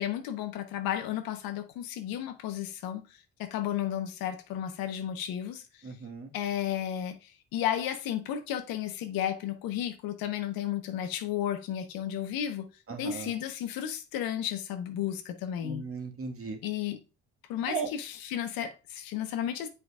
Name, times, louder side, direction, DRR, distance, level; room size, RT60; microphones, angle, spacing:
voice 1, 0.0-3.1 3.4-5.6 6.3-12.7 13.0-15.8 16.6-17.0 17.5-19.7, left 10 dB, 70° left, 1.0 m, -33 dB
voice 2, 5.8-6.3 12.9-13.3 15.6-16.6 17.7-17.9, right 5 dB, 40° right, 1.7 m, -36 dB
7.9 x 5.2 x 2.4 m
hypercardioid pair, 55°, 36 cm